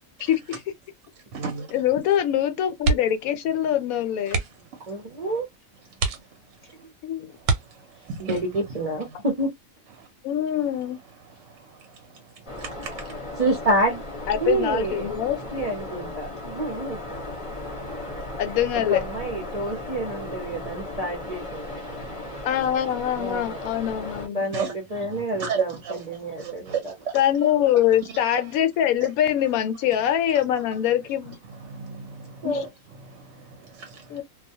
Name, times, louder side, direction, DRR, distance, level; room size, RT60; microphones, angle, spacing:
voice 1, 0.2-0.6 1.3-1.8 4.3-5.3 5.8-6.9 7.3-9.2 9.9-10.1 10.6-13.5 15.8-16.3 16.5-16.6 17.1-17.2 17.7-18.2 18.9-19.3 19.7-20.7 21.2-21.3 21.8-22.4 24.5-28.6 29.0-29.1 30.3-30.6 31.0-34.2, right 6 dB, 65° right, 0.9 m, -38 dB
voice 2, 1.7-4.4 7.0-7.4 10.2-11.0 14.3-15.4 18.4-19.0 22.4-24.5 27.1-31.4 32.4-32.6 34.1-34.2, left 10 dB, 80° left, 1.0 m, -23 dB
sound 1, 2.8-3.3 3.6-3.8 4.2-4.7 5.4-5.5 5.9-6.7 7.4-8.2 9.8-10.1 10.4-10.5, right 4 dB, 90° right, 1.1 m, -27 dB
voice 3, 4.9-5.5 6.8-6.9 8.2-9.5 13.4-14.0 14.3-15.1 15.5-17.0 18.7-21.9 23.2-23.8 24.3-25.7 26.1-26.7 32.4-32.6, right 1 dB, 40° right, 0.6 m, -28 dB
sound 2, 12.5-24.3, left 2 dB, 30° left, 0.7 m, -36 dB
2.3 x 2.1 x 2.6 m
omnidirectional pair, 1.5 m